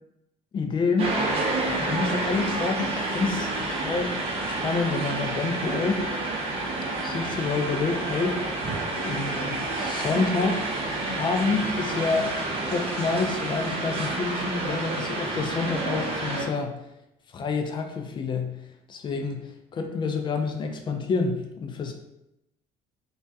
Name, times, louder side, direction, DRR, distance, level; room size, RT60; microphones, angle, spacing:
voice 1, 0.5-4.1 4.5-6.0 7.0-8.4 9.0-10.7 11.1-12.3 12.7-16.8 17.3-18.6 18.9-21.9, left 4 dB, 30° left, 4 dB, 0.4 m, -28 dB
sound 1, 1.0-16.4, right 2 dB, 40° right, 0.7 m, -29 dB
2.3 x 2.1 x 2.6 m, 0.87 s
cardioid pair, 100°, 15 cm